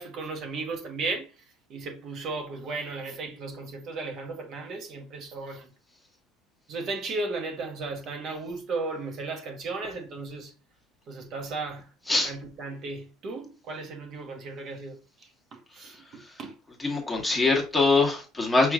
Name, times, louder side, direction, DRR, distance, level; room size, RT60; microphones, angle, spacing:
voice 1, 0.0-1.4 1.7-5.7 6.7-10.5 11.1-11.9 12.2-16.5, right 3 dB, 50° right, 1.1 m, -35 dB
voice 2, 16.8-18.7, left 3 dB, 5° left, 1.5 m, -23 dB
6.2 x 3.0 x 2.4 m
supercardioid pair, 110°, 0 cm